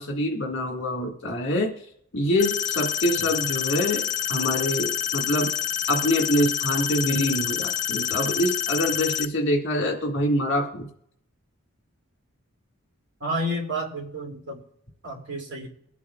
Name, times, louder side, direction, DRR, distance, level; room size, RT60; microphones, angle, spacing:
voice 1, 0.0-1.8 2.1-5.5 5.9-10.9, left 1 dB, 60° left, 1 dB, 1.9 m, -25 dB
sound 1, 2.4-9.3, left 10 dB, 35° left, 0.5 m, -27 dB
voice 2, 13.2-14.6 15.0-15.7, equal, 55° right, 0 dB, 2.7 m, -30 dB
23.0 x 8.3 x 2.4 m, 0.71 s
head